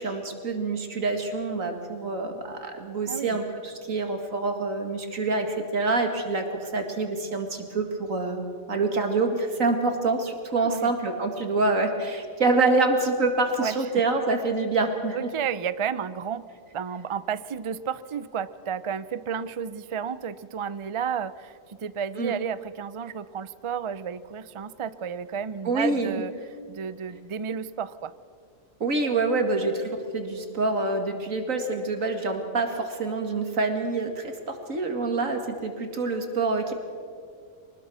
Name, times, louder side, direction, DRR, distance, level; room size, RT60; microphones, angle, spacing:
voice 1, 0.0-15.2 22.2-22.3 25.6-26.1 28.8-36.7, right 3 dB, 85° right, 5 dB, 2.5 m, -26 dB
voice 2, 3.0-3.4 10.6-10.9 13.6-14.0 15.1-26.3 26.7-28.1, right 7 dB, 50° right, 15 dB, 0.3 m, -32 dB
23.5 x 20.0 x 6.3 m, 2.2 s
omnidirectional pair, 1.4 m